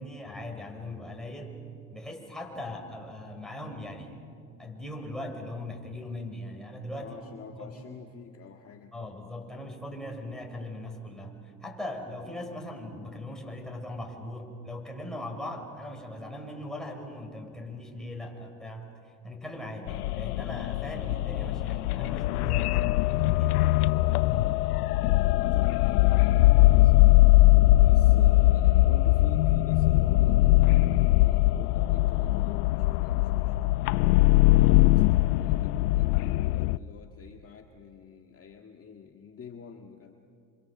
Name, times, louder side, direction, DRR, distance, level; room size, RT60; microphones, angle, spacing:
voice 1, 0.0-1.6 1.9-4.2 4.6-7.2 7.5-7.8 8.9-23.6 27.8-28.0 34.5-34.7, left 1 dB, ahead, 1 dB, 6.2 m, -40 dB
voice 2, 7.0-9.0 24.7-27.1 27.8-33.8 34.4-40.2, left 6 dB, 30° left, 3 dB, 1.9 m, -47 dB
sound 1, 19.9-36.8, left 18 dB, 85° left, 0.6 m, -21 dB
29.0 x 26.0 x 7.8 m, 2.5 s
hypercardioid pair, 85°, 44 cm